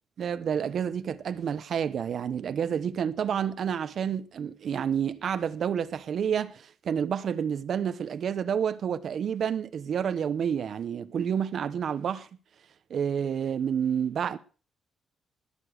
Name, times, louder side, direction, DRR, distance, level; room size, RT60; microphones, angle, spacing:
voice 1, 0.2-12.3 12.9-14.4, right 8 dB, 50° right, 0.9 m, -29 dB
20.0 x 7.0 x 6.4 m
cardioid pair, 170°, 0 cm